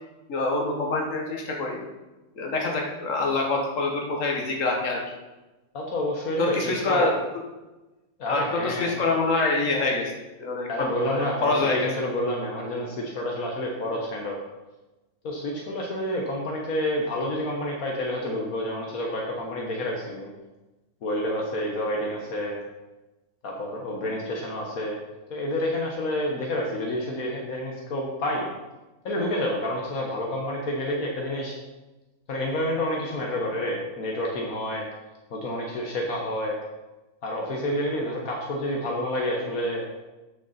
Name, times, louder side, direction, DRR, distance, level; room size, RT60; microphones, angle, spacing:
voice 1, 0.3-1.8 2.4-5.0 6.4-7.2 8.3-10.1 10.4-11.9, left 3 dB, 65° left, 0 dB, 1.9 m, -25 dB
voice 2, 5.7-7.1 8.2-8.9 10.7-14.4 15.2-20.3 21.0-22.6 23.4-25.0 25.3-28.5 29.0-31.5 32.3-34.8 35.3-36.6 37.2-39.9, left 1 dB, 80° left, -1 dB, 1.7 m, -29 dB
9.7 x 6.5 x 4.2 m, 1.1 s
omnidirectional pair, 1.5 m